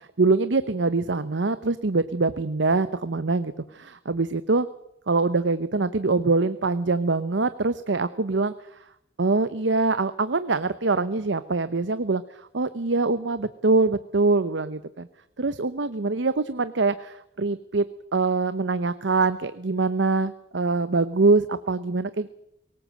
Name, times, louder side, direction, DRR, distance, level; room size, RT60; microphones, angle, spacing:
voice 1, 0.2-4.7 5.1-8.5 9.2-12.2 12.5-15.1 15.4-17.8 18.1-22.3, right 3 dB, 75° right, 13 dB, 0.8 m, -24 dB
23.0 x 19.0 x 7.6 m, 0.78 s
head